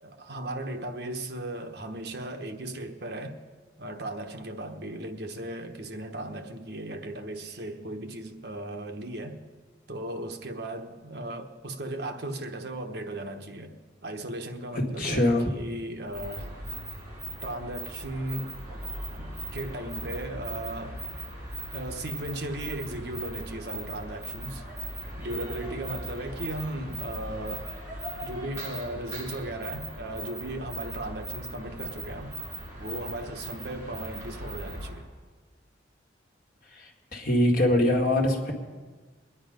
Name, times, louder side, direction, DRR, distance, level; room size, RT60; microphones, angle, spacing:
voice 1, 0.0-3.4 3.8-9.4 9.9-16.6 17.4-18.6 19.2-21.0 21.7-24.6 25.2-27.7 28.2-32.4 32.8-35.1, right 1 dB, 60° right, 4 dB, 1.1 m, -36 dB
voice 2, 14.7-15.5 36.7-38.5, left 1 dB, 50° left, 1 dB, 2.0 m, -24 dB
sound 1, 16.1-35.0, right 1 dB, 15° right, 4.8 m, -39 dB
21.5 x 10.0 x 5.1 m, 1.4 s
head